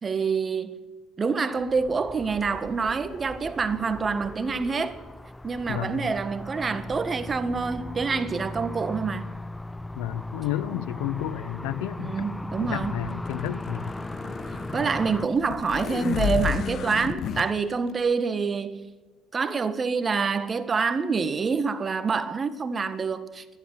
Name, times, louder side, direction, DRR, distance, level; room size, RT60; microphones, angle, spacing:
voice 1, 0.0-0.8 1.2-5.0 5.4-9.4 10.7-10.8 12.0-12.9 14.7-18.9 19.3-23.6, right 5 dB, 35° right, 1.4 m, -27 dB
sound 1, 1.6-15.3, left 1 dB, 10° left, 0.5 m, -38 dB
voice 2, 5.7-6.0 10.0-12.3 12.6-13.9, left 12 dB, 80° left, 0.6 m, -31 dB
sound 2, 13.1-17.5, left 8 dB, 55° left, 1.1 m, -32 dB
11.5 x 11.5 x 10.0 m
hypercardioid pair, 70°, 0 cm